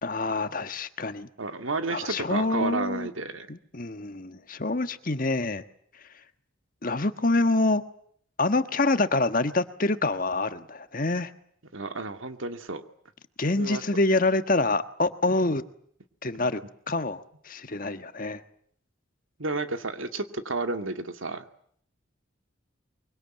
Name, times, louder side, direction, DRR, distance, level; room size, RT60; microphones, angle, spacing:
voice 1, 0.0-1.3 1.9-3.1 3.5-5.6 6.8-7.8 8.4-11.3 13.4-15.6 16.2-16.6 16.9-18.4, left 2 dB, 45° left, 10 dB, 1.4 m, -26 dB
voice 2, 1.4-3.5 11.7-12.8 13.6-13.8 16.4-16.5 19.4-21.4, right 3 dB, 80° right, 8 dB, 2.2 m, -31 dB
24.5 x 24.0 x 9.1 m, 0.64 s
head